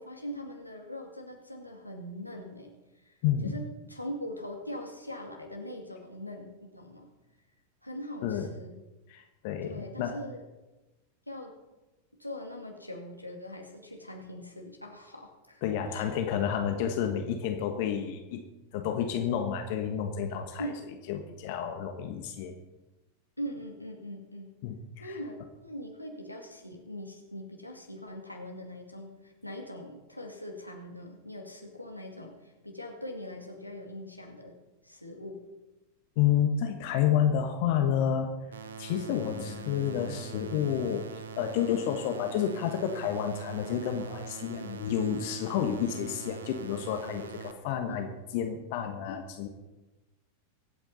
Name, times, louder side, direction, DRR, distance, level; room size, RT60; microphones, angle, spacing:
voice 1, 0.0-2.7 3.1-3.2 3.4-7.1 7.8-8.7 9.6-10.4 11.3-11.5 12.2-15.6 15.9-16.1 20.6-20.8 23.4-24.5 25.0-34.6 34.8-35.4 44.6-44.8 47.9-48.0, equal, 90° left, 1 dB, 2.2 m, -41 dB
voice 2, 3.2-3.5 8.2-8.5 9.1-10.2 15.6-18.4 18.7-20.7 21.1-22.5 24.6-25.1 36.2-38.3 38.8-49.5, left 9 dB, 50° left, 5 dB, 1.3 m, -30 dB
sound 1, 38.5-47.5, right 6 dB, 65° right, 1.1 m, -43 dB
23.5 x 8.9 x 4.1 m, 1.1 s
figure-of-eight pair, 90°, 0 cm